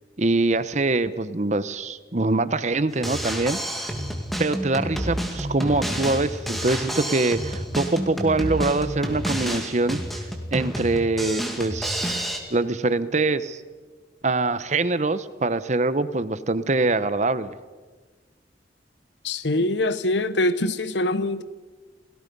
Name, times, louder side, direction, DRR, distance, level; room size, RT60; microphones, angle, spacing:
voice 1, 0.2-3.9 4.4-10.0 10.5-12.2 12.5-13.6 14.2-17.5, right 2 dB, 40° right, 14 dB, 0.9 m, -24 dB
Drum kit, 2.9-12.4, equal, ahead, 2.3 m, -29 dB
voice 2, 19.2-21.4, left 1 dB, 80° left, 14 dB, 1.0 m, -24 dB
29.0 x 18.0 x 5.4 m, 1.3 s
head